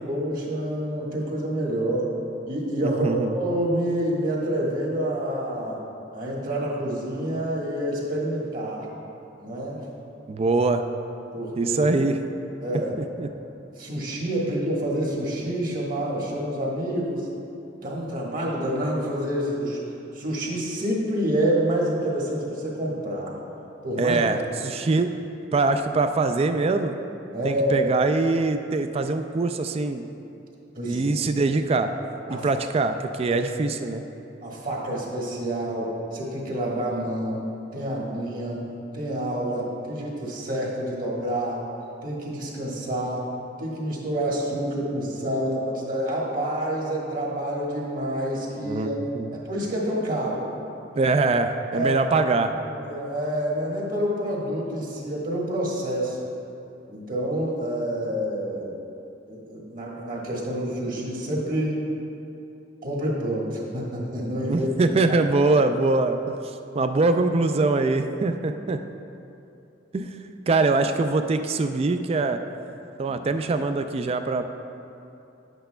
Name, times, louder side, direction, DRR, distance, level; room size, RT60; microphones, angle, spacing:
voice 1, 0.1-2.1 2.5-5.8 6.1-8.9 9.4-9.8 11.3-12.0 12.6-12.9 13.8-17.3 17.8-19.8 20.1-23.3 23.8-24.2 27.3-27.9 30.7-31.1 32.3-32.4 33.3-33.4 34.4-37.4 37.7-38.6 38.9-41.6 42.0-43.3 43.6-49.0 49.3-50.4 51.7-51.9 52.6-56.2 56.9-58.7 59.3-61.9 62.8-64.7 73.0-73.2, right 1 dB, 50° right, -4 dB, 1.4 m, -28 dB
voice 2, 2.8-3.4 10.3-10.8 11.6-12.2 13.0-13.3 24.0-25.1 25.5-26.9 27.4-30.1 30.9-31.9 32.3-34.0 48.7-48.9 49.1-49.3 51.0-52.6 64.5-68.8 69.9-70.2 70.5-72.4 73.0-74.4, right 3 dB, 30° right, 8 dB, 0.3 m, -23 dB
10.5 x 8.0 x 2.2 m, 2.8 s
head